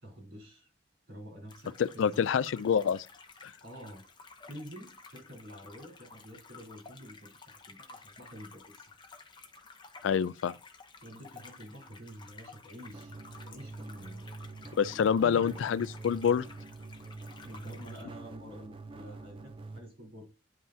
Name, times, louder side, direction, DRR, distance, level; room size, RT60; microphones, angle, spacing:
voice 1, 0.0-0.7 1.1-2.3 3.6-4.0 4.5-8.9 11.0-13.1 13.4-14.2 14.9-15.7 17.4-20.3, equal, 90° right, 3.9 m, -48 dB
sound 1, 1.5-18.0, left 4 dB, 25° left, 0.7 m, -53 dB
voice 2, 1.8-3.1 3.4-3.5 10.0-10.5 14.8-16.5, left 7 dB, 85° left, 0.3 m, -27 dB
sound 2, 12.9-19.8, right 3 dB, 25° right, 0.4 m, -46 dB
9.7 x 5.6 x 2.7 m
head